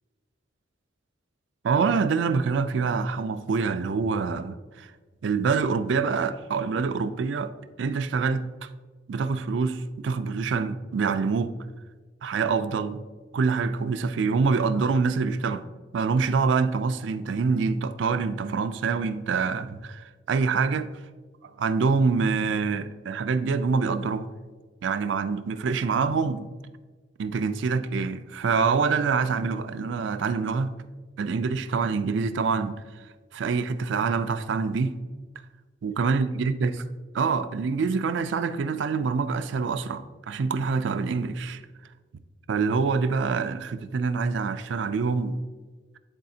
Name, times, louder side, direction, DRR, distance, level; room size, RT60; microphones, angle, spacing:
voice 1, 1.6-4.9 5.2-7.5 7.8-8.7 9.1-11.5 12.2-13.0 13.3-15.6 15.9-21.0 21.4-24.3 24.8-26.5 27.2-30.7 31.2-33.0 33.3-34.9 35.8-36.8 37.1-41.6 42.5-45.4, right 5 dB, 70° right, 0.4 m, -26 dB
10.0 x 4.0 x 2.8 m
head